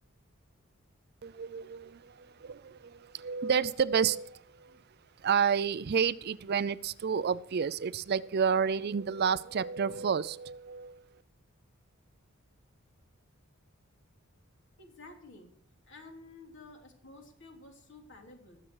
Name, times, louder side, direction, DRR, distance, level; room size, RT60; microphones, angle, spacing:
voice 1, 1.2-4.8 5.2-11.0, right 6 dB, 50° right, 17 dB, 0.4 m, -30 dB
voice 2, 14.8-15.5 15.8-18.6, left 2 dB, 60° left, 2 dB, 3.1 m, -52 dB
20.5 x 7.6 x 4.7 m, 0.67 s
head